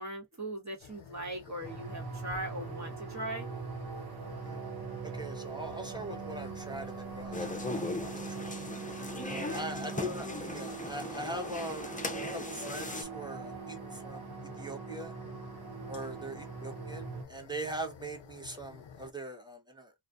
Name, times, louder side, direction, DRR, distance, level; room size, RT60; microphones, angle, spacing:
voice 1, 0.0-3.5 9.3-9.7 15.8-16.1, right 1 dB, 35° right, 1.1 m, -40 dB
sound 1, 0.8-19.1, left 7 dB, 65° left, 0.6 m, -51 dB
sound 2, 1.6-17.2, right 5 dB, 50° right, 0.7 m, -42 dB
voice 2, 5.0-8.6 9.2-12.0 12.3-14.2 14.6-15.1 15.9-19.9, right 1 dB, 10° right, 0.8 m, -41 dB
sound 3, 7.3-13.0, left 2 dB, 20° left, 0.5 m, -39 dB
2.3 x 2.2 x 2.4 m
wide cardioid pair, 45°, 47 cm